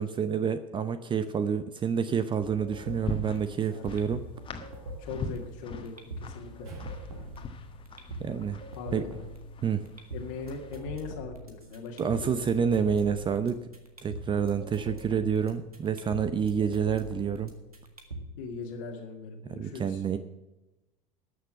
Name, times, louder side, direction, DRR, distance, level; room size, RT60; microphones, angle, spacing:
voice 1, 0.0-4.3 8.2-8.6 8.9-9.0 9.6-9.8 12.0-13.6 14.0-17.5 19.6-20.2, right 7 dB, 25° right, 12 dB, 0.7 m, -28 dB
sound 1, 2.4-18.4, right 1 dB, 85° right, 1.7 m, -43 dB
sound 2, 2.8-10.8, left 4 dB, 30° left, 1.4 m, -42 dB
voice 2, 5.0-6.8 8.7-9.1 10.1-12.5 18.4-20.0, left 4 dB, 60° left, 0 dB, 1.9 m, -40 dB
sound 3, 6.6-11.2, right 2 dB, 55° right, 5.3 m, -51 dB
13.0 x 6.7 x 8.2 m, 1.0 s
figure-of-eight pair, 70°, 18 cm